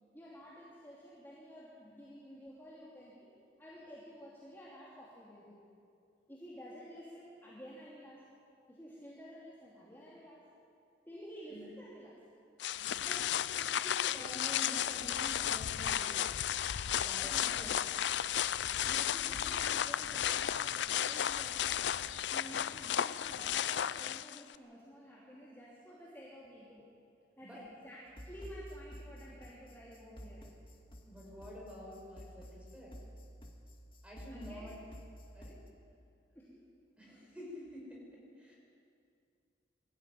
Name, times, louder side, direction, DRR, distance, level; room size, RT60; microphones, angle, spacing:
voice 1, 0.1-3.3 3.6-5.6 6.3-8.3 8.7-10.5 11.1-12.2 14.0-14.2 18.8-26.8 27.4-30.4 34.3-34.7 36.3-36.6, equal, 10° left, -7 dB, 2.8 m, -51 dB
sound 1, 12.6-24.5, left 10 dB, 70° left, 0.4 m, -34 dB
voice 2, 13.0-16.3 16.9-17.9 27.4-27.6 31.1-32.9 34.0-34.8 35.3-35.6 37.0-38.6, left 1 dB, 5° right, -3 dB, 5.6 m, -48 dB
sound 2, 28.1-35.7, equal, 30° left, 1.8 m, -51 dB
22.5 x 14.5 x 9.3 m, 2.5 s
head